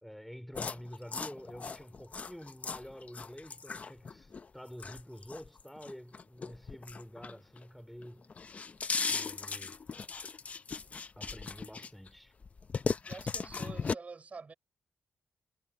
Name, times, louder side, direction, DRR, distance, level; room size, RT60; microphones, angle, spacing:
voice 1, 0.0-8.3 9.1-9.8 11.2-12.3, equal, ahead, 4.3 m, -48 dB
sound 1, 0.5-7.7 8.0-12.1 12.4-13.9, left 5 dB, 30° left, 0.6 m, -37 dB
voice 2, 13.1-14.5, right 4 dB, 30° right, 5.4 m, -47 dB
wide cardioid pair, 155°, 5 cm